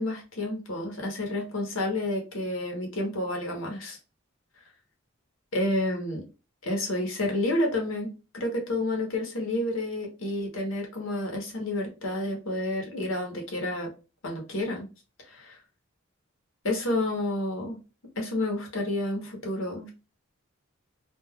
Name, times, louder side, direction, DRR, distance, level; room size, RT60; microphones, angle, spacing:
voice 1, 0.0-4.0 5.5-6.2 6.6-13.9 14.2-14.9 15.3-15.6 16.6-17.8 18.2-19.9, left 1 dB, 70° left, 1 dB, 1.0 m, -30 dB
2.5 x 2.3 x 3.5 m, 0.31 s
head